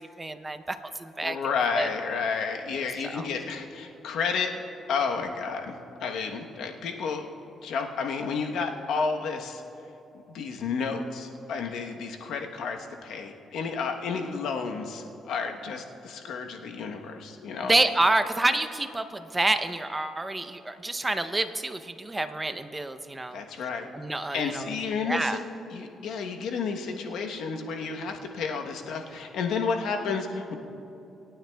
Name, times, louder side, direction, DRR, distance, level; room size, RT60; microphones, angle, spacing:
voice 1, 0.0-1.4 1.7-1.9 3.1-3.3 17.6-23.4 23.9-24.7 25.0-25.4, right 2 dB, 15° right, 9 dB, 0.6 m, -28 dB
voice 2, 1.2-4.5 4.9-7.2 7.6-9.6 10.3-17.7 23.3-23.9 24.3-25.4 25.7-30.5, left 5 dB, 80° left, 3 dB, 1.0 m, -31 dB
25.0 x 9.2 x 2.3 m, 2.8 s
cardioid pair, 90°, 0 cm